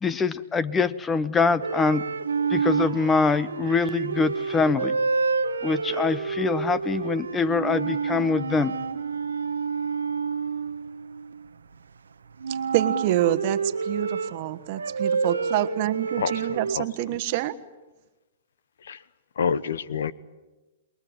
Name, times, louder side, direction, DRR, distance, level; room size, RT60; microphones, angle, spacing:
voice 1, 0.0-2.0 2.5-5.0 5.6-8.7, left 4 dB, 15° left, 17 dB, 1.0 m, -24 dB
sound 1, 1.6-11.8 12.4-16.8, right 5 dB, 85° right, 1.1 m, -28 dB
voice 2, 12.5-17.5, right 15 dB, 50° right, 12 dB, 1.3 m, -27 dB
voice 3, 16.2-17.1 18.8-19.0 19.4-20.1, left 6 dB, 75° left, 19 dB, 0.9 m, -28 dB
27.5 x 22.0 x 8.9 m, 1.1 s
hypercardioid pair, 120°, 0 cm